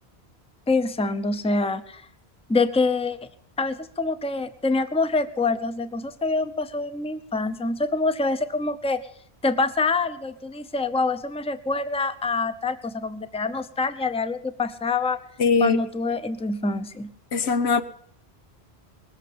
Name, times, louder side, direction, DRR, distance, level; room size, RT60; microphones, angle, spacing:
voice 1, 0.7-2.0 2.5-3.2 3.6-9.0 9.4-15.2 15.6-17.1, left 3 dB, 5° left, 0.6 m, -25 dB
voice 2, 15.4-15.8 17.3-17.8, left 4 dB, 85° left, 1.2 m, -20 dB
20.0 x 8.1 x 8.6 m
omnidirectional pair, 1.1 m